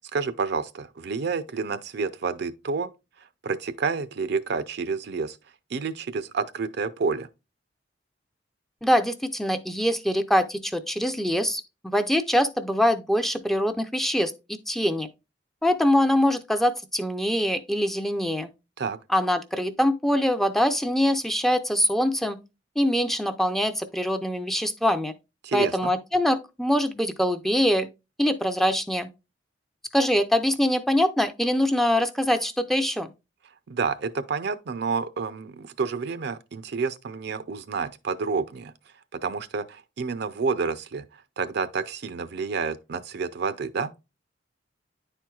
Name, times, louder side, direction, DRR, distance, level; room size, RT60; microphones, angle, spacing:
voice 1, 0.1-2.9 3.4-5.4 5.7-7.3 18.8-19.0 25.4-25.9 33.7-38.7 39.1-43.9, right 5 dB, 60° right, 0.5 m, -29 dB
voice 2, 8.8-15.1 15.6-18.5 19.1-22.4 22.8-25.1 25.5-27.9 28.2-29.1 29.9-33.1, equal, ahead, 0.4 m, -24 dB
9.9 x 4.5 x 2.3 m
head